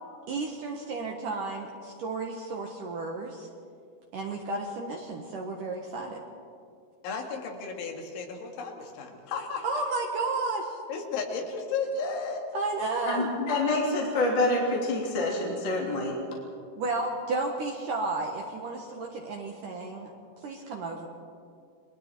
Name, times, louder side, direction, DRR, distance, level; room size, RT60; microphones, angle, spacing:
voice 1, 0.3-3.5 4.1-6.2 9.6-10.7 12.5-13.3 16.8-20.1 20.4-21.1, right 3 dB, 80° right, 1 dB, 1.8 m, -32 dB
voice 2, 7.0-9.6 10.9-12.5, left 4 dB, 70° left, 1 dB, 4.5 m, -34 dB
voice 3, 13.0-16.1, left 2 dB, 30° left, -3 dB, 2.8 m, -27 dB
30.0 x 21.5 x 4.5 m, 2.3 s
omnidirectional pair, 5.9 m